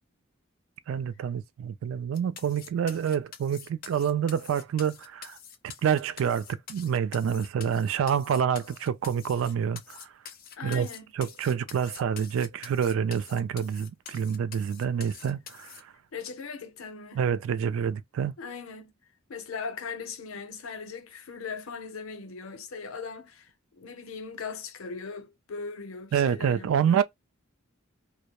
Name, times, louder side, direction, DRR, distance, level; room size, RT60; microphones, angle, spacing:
voice 1, 0.9-5.4 5.8-10.1 10.6-10.9 11.1-15.9 17.1-18.3 26.1-27.0, right 8 dB, 75° right, 0.3 m, -27 dB
sound 1, 2.1-15.8, left 8 dB, 45° left, 0.4 m, -46 dB
voice 2, 10.6-11.0 14.9-15.1 16.1-17.2 18.4-18.9 19.3-27.0, left 5 dB, 90° left, 0.6 m, -39 dB
2.2 x 2.0 x 2.8 m
head